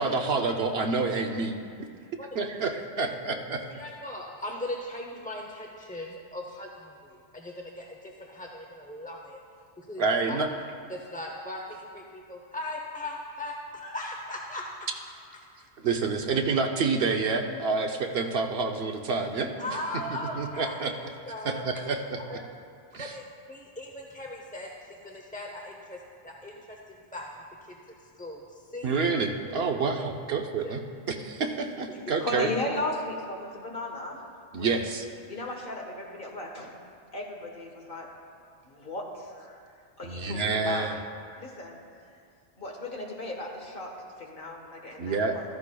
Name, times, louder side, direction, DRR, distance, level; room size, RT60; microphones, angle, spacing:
voice 1, 0.0-1.6 2.4-2.7 3.0-3.6 10.0-10.5 15.8-19.5 20.4-20.9 21.4-22.2 22.9-23.1 28.8-30.8 31.1-32.5 34.5-35.1 40.0-41.0 45.0-45.3, right 4 dB, 65° right, 4 dB, 0.9 m, -28 dB
voice 2, 3.7-9.4 9.8-10.0 10.3-10.4 10.9-14.9 19.6-20.9 21.3-21.7 22.2-22.4 22.9-27.2 27.6-29.1 30.6-30.7 31.9-32.0, left 1 dB, 10° left, 0 dB, 0.5 m, -39 dB
voice 3, 32.2-34.2 34.5-34.7 35.3-36.7 37.1-38.1 38.6-39.6 40.0-40.9 41.4-41.8 42.6-45.4, left 2 dB, 50° left, 0 dB, 1.4 m, -36 dB
14.5 x 13.5 x 2.3 m, 2.3 s
omnidirectional pair, 1.2 m